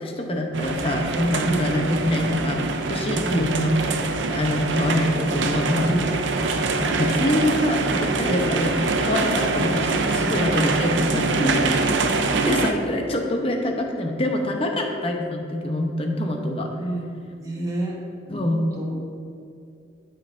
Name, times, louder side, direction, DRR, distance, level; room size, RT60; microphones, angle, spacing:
voice 1, 0.0-6.0 6.5-11.8 12.5-16.7 18.3-18.7, left 1 dB, 30° left, 2 dB, 0.7 m, -25 dB
sound 1, 0.5-12.7, right 3 dB, 75° right, 0.6 m, -24 dB
voice 2, 1.4-1.8 3.2-3.5 5.8-6.2 8.3-8.6 11.1-12.0 16.8-18.0 18.3-19.0, right 1 dB, 20° right, -3 dB, 1.3 m, -29 dB
12.5 x 5.4 x 2.6 m, 2.4 s
head